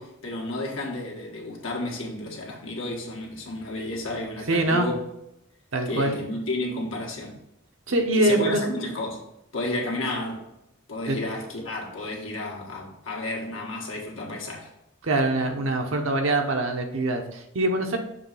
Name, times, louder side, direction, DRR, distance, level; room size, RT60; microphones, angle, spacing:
voice 1, 0.0-5.0 5.8-7.4 8.1-9.2 9.5-10.5 10.9-14.7, left 2 dB, 75° left, 1.6 m, -32 dB
voice 2, 4.5-4.9 5.7-6.2 7.9-8.6 11.1-11.2 15.0-18.0, right 2 dB, 85° right, 0.9 m, -24 dB
6.7 x 3.1 x 5.6 m
head